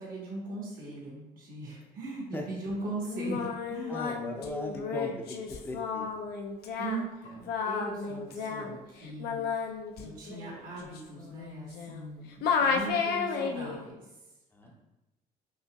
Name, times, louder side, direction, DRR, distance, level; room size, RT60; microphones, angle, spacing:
voice 1, 0.0-4.2 6.7-9.7 10.0-14.0 14.6-14.7, right 2 dB, 60° right, -4 dB, 1.4 m, -39 dB
Singing, 3.1-12.1 12.4-13.8, left 5 dB, 70° left, 0.5 m, -32 dB
voice 2, 3.9-5.1 5.6-6.2 14.6-14.7, left 1 dB, 10° left, 1 dB, 0.6 m, -38 dB
5.4 x 2.8 x 2.3 m, 1.0 s
cardioid pair, 110°, 17 cm